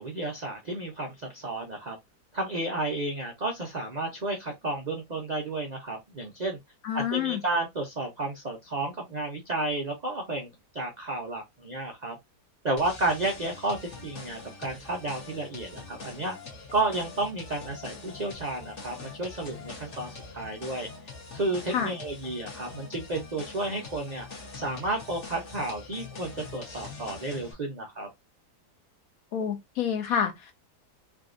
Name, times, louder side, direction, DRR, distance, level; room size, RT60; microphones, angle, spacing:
voice 1, 0.0-2.0 2.3-6.6 6.9-12.2 12.6-16.4 16.7-20.9 21.3-24.3 24.5-28.1, right 2 dB, 80° right, 0.3 m, -32 dB
voice 2, 6.8-7.4 21.7-21.9 29.3-30.5, left 8 dB, 65° left, 1.1 m, -28 dB
sound 1, 12.8-27.5, left 4 dB, 50° left, 1.3 m, -44 dB
3.4 x 2.6 x 2.5 m
omnidirectional pair, 1.7 m